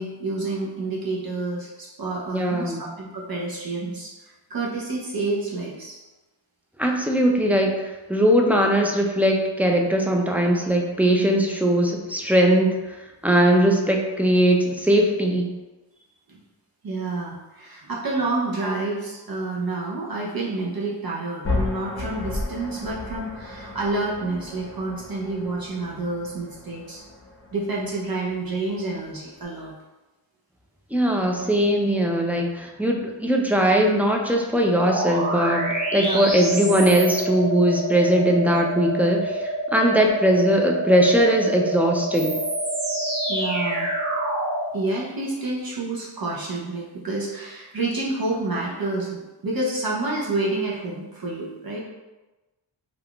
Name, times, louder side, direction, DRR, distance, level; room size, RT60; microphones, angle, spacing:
voice 1, 0.0-4.1 4.5-6.0 16.3-16.4 16.8-27.0 27.5-29.7 36.0-36.3 43.3-43.9 44.7-51.8, right 2 dB, 50° right, -4 dB, 0.6 m, -29 dB
voice 2, 2.3-2.8 6.8-13.0 13.2-15.4 30.9-42.4, right 1 dB, 5° right, 0 dB, 0.3 m, -20 dB
sound 1, 21.4-29.4, left 2 dB, 25° left, 0.7 m, -34 dB
sound 2, 34.7-44.6, right 1 dB, 70° right, 1.0 m, -27 dB
3.4 x 2.4 x 2.3 m, 1.1 s
cardioid pair, 50°, 47 cm